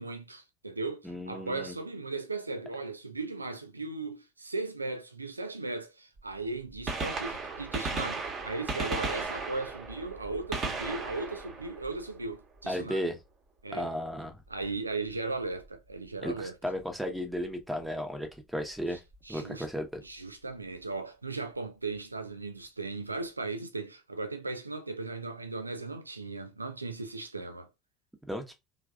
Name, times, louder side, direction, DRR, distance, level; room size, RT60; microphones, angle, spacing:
voice 1, 0.0-13.1 13.6-13.9 14.5-16.5 18.9-19.0 19.2-19.7 20.0-27.7, right 3 dB, 85° right, 0.3 m, -37 dB
voice 2, 1.0-1.7 12.7-13.2 13.7-14.3 16.2-19.0 19.3-19.9 28.3-28.5, equal, 5° right, 0.9 m, -34 dB
Gunshot gunfire, 6.2-6.3 6.7-12.6 14.5-14.7 15.7-15.8 17.4-17.5 18.9-19.0 19.1-19.2, right 3 dB, 35° right, 1.1 m, -35 dB
3.2 x 2.4 x 2.3 m
figure-of-eight pair, 65°, 0 cm